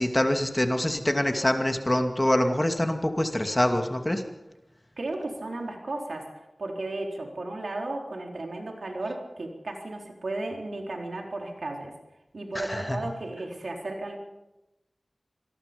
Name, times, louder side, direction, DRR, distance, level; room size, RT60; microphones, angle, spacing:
voice 1, 0.0-4.2 12.5-13.0, left 1 dB, 20° left, 5 dB, 2.4 m, -25 dB
voice 2, 5.0-6.3 6.6-11.9 12.3-14.2, right 2 dB, 90° right, 1 dB, 3.9 m, -34 dB
26.0 x 20.0 x 5.3 m, 0.96 s
wide cardioid pair, 65°, 0 cm